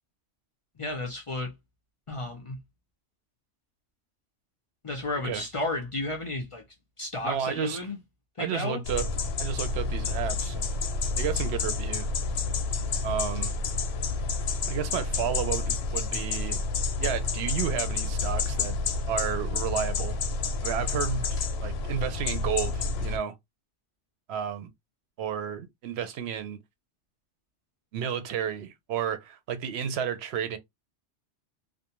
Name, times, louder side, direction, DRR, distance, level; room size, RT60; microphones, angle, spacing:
voice 1, 0.8-1.5 2.1-2.6 4.8-6.6 7.0-8.0 8.4-8.8, left 2 dB, 45° left, 0.4 m, -32 dB
voice 2, 7.2-7.8 8.4-9.1 9.4-10.7 11.2-12.1 13.0-13.5 14.7-16.6 17.0-18.8 19.1-20.2 20.6-21.3 21.6-23.3 24.3-24.7 25.2-26.6 27.9-30.6, right 8 dB, 65° right, 0.8 m, -31 dB
sound 1, 8.8-23.2, left 4 dB, 65° left, 0.8 m, -29 dB
2.5 x 2.1 x 2.8 m
omnidirectional pair, 1.2 m